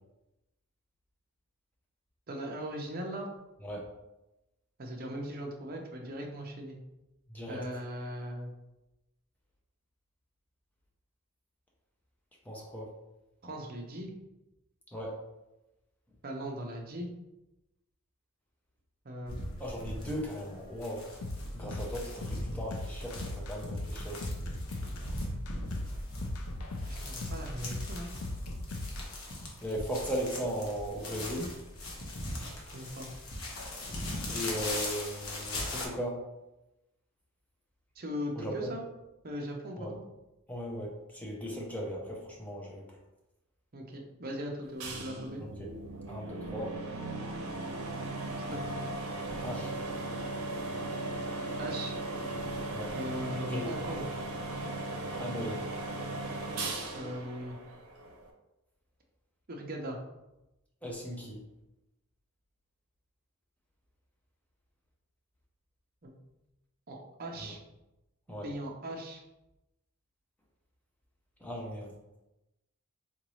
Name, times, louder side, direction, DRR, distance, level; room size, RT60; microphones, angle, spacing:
voice 1, 2.3-3.3 4.8-6.8 7.5-8.5 13.4-14.1 16.2-17.1 19.0-19.4 26.8-28.1 32.4-33.1 38.0-38.8 39.2-40.0 43.7-45.4 48.5-48.6 51.6-51.9 52.9-54.1 56.9-57.6 59.5-60.0 66.0-66.1 66.9-67.6 68.4-69.2, equal, 40° right, 1 dB, 0.6 m, -39 dB
voice 2, 7.3-7.6 12.4-12.9 14.9-15.2 19.6-21.2 21.5-24.3 29.6-31.5 34.3-36.2 38.3-38.8 39.8-39.9 40.5-42.9 45.4-45.7 46.1-46.7 49.4-49.7 52.7-52.9 53.3-53.7 55.2-55.6 60.8-61.4 67.4-67.5 68.3-68.5 71.4-71.9, equal, 5° left, -2 dB, 0.6 m, -37 dB
sound 1, 19.3-35.9, left 1 dB, 70° left, 0.8 m, -40 dB
sound 2, 21.2-29.1, left 1 dB, 90° left, 0.5 m, -38 dB
sound 3, 44.8-58.3, right 2 dB, 85° right, 0.6 m, -37 dB
3.8 x 2.6 x 3.0 m, 0.95 s
head